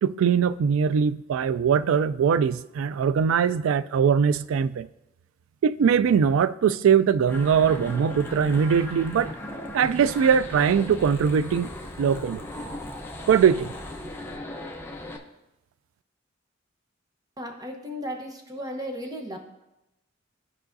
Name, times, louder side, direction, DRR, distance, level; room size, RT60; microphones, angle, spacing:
voice 1, 0.0-4.9 5.6-9.3 9.7-11.7 12.0-12.4 13.3-13.7, right 7 dB, 85° right, 0.3 m, -21 dB
sound 1, 7.3-15.2, left 1 dB, 10° left, 0.7 m, -37 dB
voice 2, 17.4-19.4, equal, 20° right, 0.9 m, -35 dB
14.0 x 4.8 x 2.6 m
head